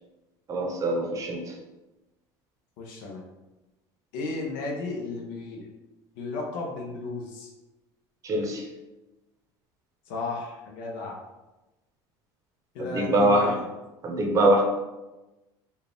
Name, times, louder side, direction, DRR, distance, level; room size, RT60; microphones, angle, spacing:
voice 1, 0.5-1.5 8.2-8.6 12.8-13.5 14.0-14.6, right 1 dB, 30° right, 2 dB, 0.7 m, -23 dB
voice 2, 2.8-3.2 4.1-5.7 6.2-7.5 10.1-11.2 12.7-13.7, left 3 dB, 85° left, 0 dB, 0.9 m, -34 dB
4.5 x 2.4 x 3.4 m, 1.1 s
cardioid pair, 130°, 11 cm